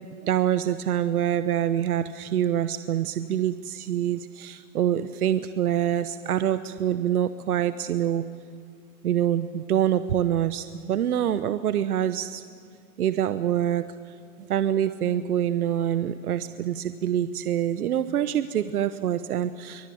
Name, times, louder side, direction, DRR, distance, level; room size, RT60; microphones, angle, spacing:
voice 1, 0.2-8.2 9.0-12.4 13.0-19.9, right 10 dB, 85° right, 12 dB, 1.0 m, -26 dB
23.5 x 19.5 x 8.6 m, 2.4 s
hypercardioid pair, 160°, 44 cm